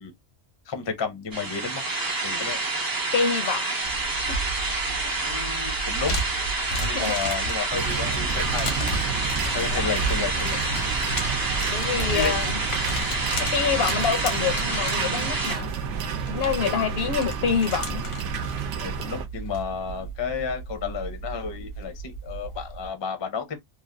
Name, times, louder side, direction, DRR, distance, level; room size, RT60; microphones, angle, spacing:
voice 1, 0.7-1.8 2.2-2.6 5.2-6.2 6.8-9.0 9.5-10.6 12.1-12.3 16.6-16.8 18.8-23.6, left 6 dB, 30° left, 0.5 m, -32 dB
sound 1, 1.3-15.5, right 3 dB, 35° right, 0.4 m, -28 dB
voice 2, 3.1-3.7 4.0-4.4 5.2-5.3 6.9-7.2 9.8-9.9 11.7-12.6 13.4-15.7 16.3-18.0, left 6 dB, 65° left, 0.8 m, -27 dB
sound 2, 3.8-22.9, right 1 dB, 80° left, 1.3 m, -34 dB
sound 3, 7.7-19.3, right 5 dB, 80° right, 0.9 m, -31 dB
3.0 x 2.3 x 2.5 m
omnidirectional pair, 1.2 m